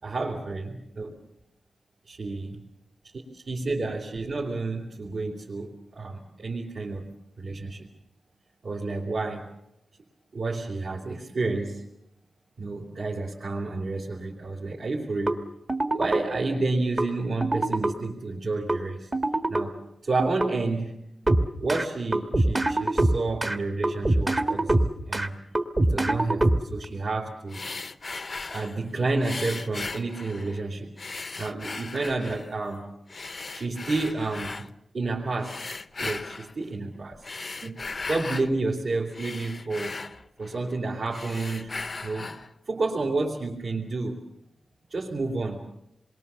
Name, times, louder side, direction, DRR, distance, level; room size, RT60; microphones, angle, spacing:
voice 1, 0.0-1.1 2.1-2.6 3.1-7.1 7.4-7.9 8.6-9.5 10.3-11.8 12.6-15.4 15.9-19.1 19.5-19.8 20.0-21.1 21.6-25.4 25.9-27.7 28.5-30.9 31.4-32.9 33.5-34.5 34.9-35.7 36.0-37.2 37.6-40.0 40.4-42.4 42.7-44.2 44.9-45.8, right 3 dB, 55° right, -2 dB, 3.3 m, -30 dB
sound 1, 15.3-15.4 15.7-16.2 17.0-17.1 17.4-17.9 18.7-18.8 19.1-19.6 20.2-20.5 21.3-21.8 22.1-23.6 23.8-25.3 25.5-26.8, right 2 dB, 25° right, 1.5 m, -23 dB
sound 2, 27.5-28.8 29.2-30.6 31.0-32.5 33.1-34.7 35.4-36.5 37.1-38.5 38.9-40.8 41.1-42.5, left 3 dB, 35° left, 0.8 m, -37 dB
28.0 x 22.5 x 7.0 m, 0.84 s
wide cardioid pair, 165°, 0 cm